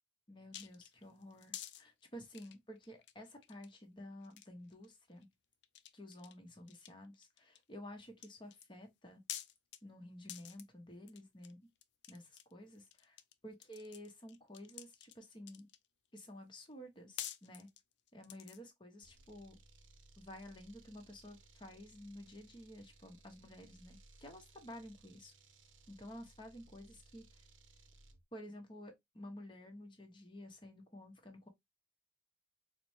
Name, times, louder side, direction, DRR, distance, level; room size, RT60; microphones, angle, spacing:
voice 1, 0.3-5.3 5.9-9.2 9.8-11.6 12.1-13.1 13.4-15.7 16.1-17.7 18.1-19.6 20.2-25.3 25.9-27.4 28.3-31.5, left 1 dB, 25° left, 0.9 m, -52 dB
sound 1, 0.5-1.8 2.3-3.1 3.4-3.7 4.2-4.9 5.2-5.3 5.6-6.3 6.7-7.6 8.2-8.7 9.3-9.8 10.3-10.6 11.1-11.5 11.8-13.3 13.6-15.9 16.7-16.8 17.2-18.7, left 12 dB, 65° left, 0.4 m, -48 dB
sound 2, 19.0-28.2, right 3 dB, 90° right, 0.6 m, -63 dB
4.2 x 2.1 x 3.0 m
head